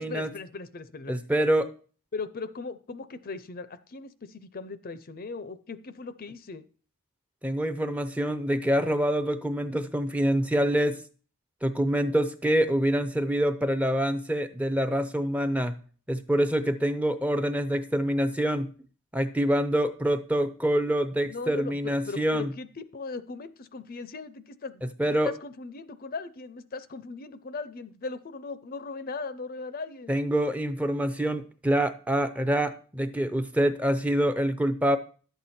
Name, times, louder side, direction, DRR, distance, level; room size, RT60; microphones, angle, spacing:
voice 1, 0.0-1.1 2.1-6.6 21.3-30.1, left 4 dB, 45° left, 13 dB, 0.5 m, -38 dB
voice 2, 1.1-1.7 7.4-11.0 11.6-15.8 16.1-18.7 19.1-22.5 25.0-25.3 30.1-35.0, right 1 dB, 5° right, 11 dB, 0.5 m, -26 dB
11.5 x 7.9 x 4.3 m, 0.41 s
head